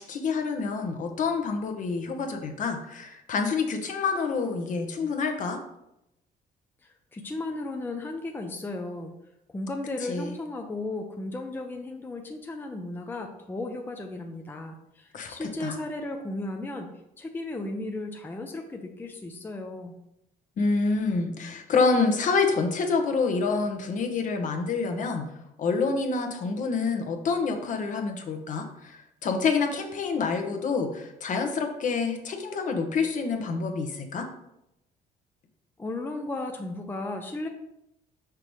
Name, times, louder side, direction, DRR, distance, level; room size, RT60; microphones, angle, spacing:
voice 1, 0.0-5.6 10.0-10.3 15.1-15.8 20.6-25.3 25.6-34.3, left 4 dB, 50° left, 4 dB, 1.0 m, -27 dB
voice 2, 7.1-9.1 9.5-16.9 17.2-19.9 35.8-37.5, left 2 dB, 10° left, 3 dB, 0.6 m, -35 dB
5.8 x 5.2 x 3.1 m, 0.84 s
cardioid pair, 110°, 17 cm